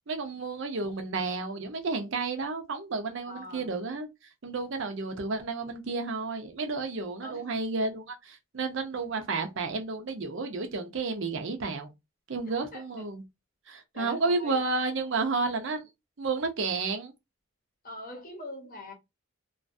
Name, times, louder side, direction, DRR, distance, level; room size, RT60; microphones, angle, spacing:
voice 1, 0.1-4.1 4.4-11.9 12.3-13.2 13.7-15.9 16.2-17.1, right 3 dB, 60° right, 0.6 m, -31 dB
voice 2, 3.3-3.7 7.2-7.5 12.7-12.8 13.9-14.7 17.8-18.9, left 1 dB, 40° left, 0.8 m, -42 dB
2.4 x 2.2 x 2.5 m
head